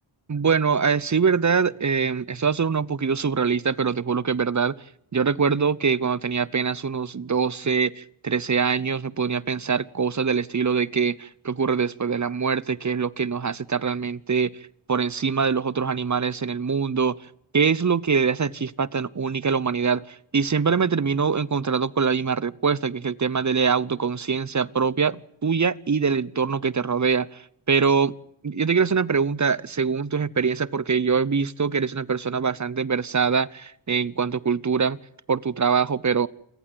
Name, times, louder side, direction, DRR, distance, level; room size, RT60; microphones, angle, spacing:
voice 1, 0.3-4.7 5.1-14.5 14.9-17.2 17.5-28.1 28.4-35.0 35.3-36.3, right 5 dB, 35° right, 0.8 m, -23 dB
28.0 x 15.0 x 9.1 m
cardioid pair, 50°, 49 cm